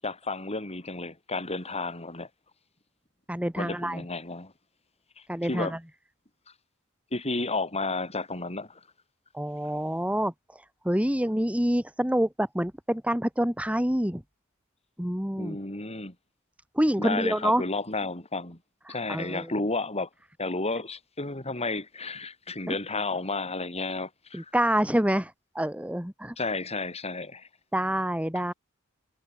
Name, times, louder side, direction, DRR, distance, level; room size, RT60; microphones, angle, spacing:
voice 1, 0.0-2.3 3.6-4.5 5.2-5.7 7.1-8.8 15.4-16.1 17.0-18.6 18.9-20.1 20.4-24.5 26.4-27.5, left 3 dB, 30° left, 7.6 m, -32 dB
voice 2, 3.3-4.0 5.3-5.8 9.3-14.2 15.0-15.6 16.7-17.6 19.1-19.5 22.7-22.8 24.3-26.4 27.7-28.5, right 1 dB, 5° right, 2.2 m, -27 dB
head